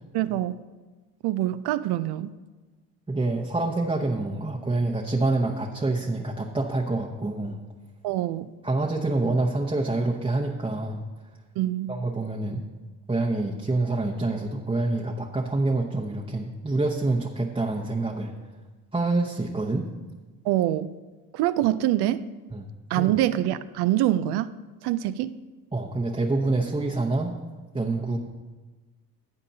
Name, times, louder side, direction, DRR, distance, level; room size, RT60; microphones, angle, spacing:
voice 1, 0.1-0.6 1.2-2.3 8.0-8.5 11.6-11.9 20.4-20.9 21.3-22.3 22.9-24.5 24.8-25.4, right 13 dB, 80° right, 14 dB, 0.6 m, -25 dB
voice 2, 3.1-7.6 8.6-11.0 11.9-12.6 13.1-18.3 18.9-19.9 22.5-22.7 23.0-23.1 25.7-27.3 27.7-28.2, right 2 dB, 15° right, -2 dB, 0.9 m, -26 dB
16.0 x 8.0 x 2.8 m, 1.2 s
cardioid pair, 80°, 39 cm